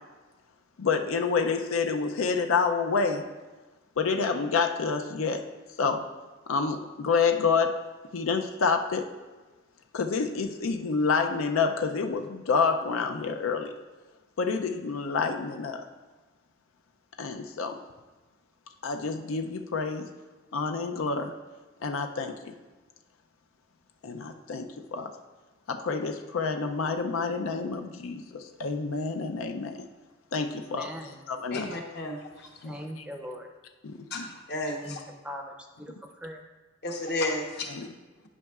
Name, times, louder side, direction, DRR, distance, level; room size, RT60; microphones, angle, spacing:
voice 1, 0.8-3.2 4.0-5.4 5.8-6.0 6.5-7.7 8.1-9.0 9.9-13.7 14.4-15.8 17.2-17.8 18.8-20.1 20.5-21.3 21.8-22.3 24.0-25.1 25.7-29.8 30.3-30.9 31.3-31.7 32.6-32.7 33.8-34.3 37.7-37.9, left 5 dB, 90° left, 5 dB, 0.5 m, -28 dB
voice 2, 30.5-31.2 32.6-33.5 34.8-35.0 35.2-36.4, equal, 5° right, 2 dB, 0.5 m, -41 dB
voice 3, 31.5-32.5 34.1-35.0 36.8-37.7, left 2 dB, 55° left, 2 dB, 0.9 m, -32 dB
11.0 x 5.3 x 2.4 m, 1.3 s
head